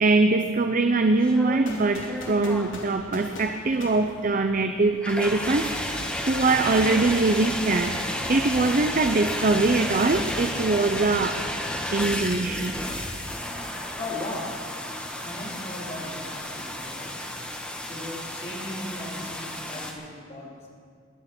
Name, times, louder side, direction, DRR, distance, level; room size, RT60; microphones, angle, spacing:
voice 1, 0.0-5.7 6.3-11.3 11.9-12.8, right 3 dB, 45° right, 7 dB, 0.6 m, -22 dB
sound 1, 1.0-19.9, left 1 dB, 5° left, 1.4 m, -33 dB
sound 2, 1.7-4.8, left 2 dB, 75° left, 3.0 m, -41 dB
sound 3, 5.4-11.4, left 1 dB, 15° right, 3.2 m, -45 dB
voice 2, 14.0-14.6 15.2-17.1 17.8-20.7, left 2 dB, 35° left, -4 dB, 3.7 m, -37 dB
21.5 x 9.4 x 6.1 m, 2.2 s
head